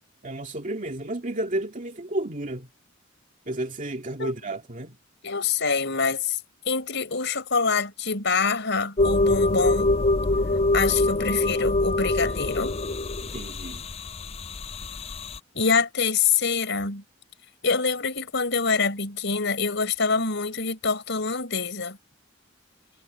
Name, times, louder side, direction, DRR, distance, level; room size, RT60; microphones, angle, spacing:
voice 1, 0.2-2.7 3.5-5.0 13.2-13.9, right 1 dB, 40° right, 2.3 m, -32 dB
voice 2, 5.2-6.4 6.7-9.9 10.7-12.7 15.6-17.0 17.6-22.0, left 5 dB, 65° left, 5.4 m, -25 dB
sound 1, 9.0-15.4, left 2 dB, 30° left, 0.6 m, -24 dB
head